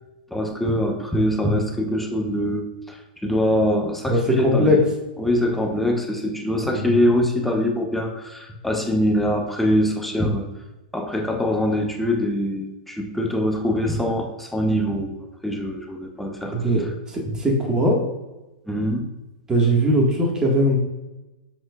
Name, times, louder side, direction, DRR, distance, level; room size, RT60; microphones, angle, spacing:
voice 1, 0.3-4.8 5.2-10.5 10.9-16.5 18.7-19.1, left 1 dB, 5° left, 3 dB, 0.9 m, -23 dB
voice 2, 4.1-4.8 6.6-6.9 16.5-18.0 19.5-20.8, equal, 15° right, -1 dB, 1.7 m, -20 dB
7.6 x 5.9 x 2.4 m, 1.1 s
hypercardioid pair, 130°, 5 cm